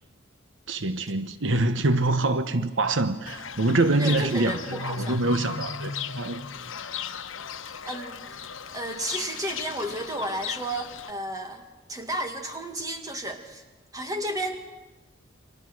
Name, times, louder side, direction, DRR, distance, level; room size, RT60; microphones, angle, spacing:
voice 1, 0.7-6.4, right 2 dB, 70° right, 1.0 m, -25 dB
Fowl / Bird, 3.3-11.1, left 6 dB, 75° left, 1.1 m, -36 dB
voice 2, 4.0-5.2 7.8-8.2 8.7-13.6 13.9-14.6, right 1 dB, 15° right, 2.2 m, -32 dB
29.0 x 25.0 x 6.3 m
head